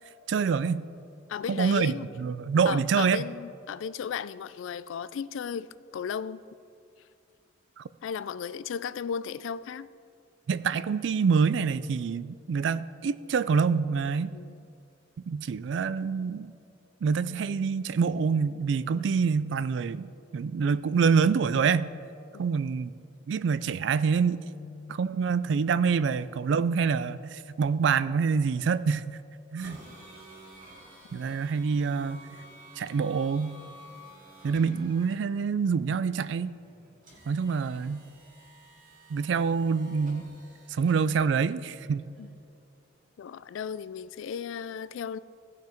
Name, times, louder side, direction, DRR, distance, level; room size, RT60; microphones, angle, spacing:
voice 1, 0.3-0.8 1.5-3.2 7.8-7.9 10.5-14.3 15.3-16.5 17.0-20.1 20.3-21.9 22.4-22.9 23.3-24.4 24.9-29.2 29.5-29.8 31.1-32.3 32.8-33.6 34.4-36.5 37.3-38.0 39.1-40.3 40.7-42.1, right 5 dB, 65° right, 0.3 m, -26 dB
voice 2, 1.3-2.0 2.7-5.7 5.9-6.4 8.0-9.9 14.3-14.7 18.9-19.2 22.3-22.5 24.6-25.0 31.1-31.3 42.2-42.3 43.2-45.2, left 7 dB, 75° left, 0.3 m, -35 dB
sound 1, 29.6-44.2, right 1 dB, 40° right, 2.4 m, -52 dB
16.0 x 5.8 x 4.4 m
head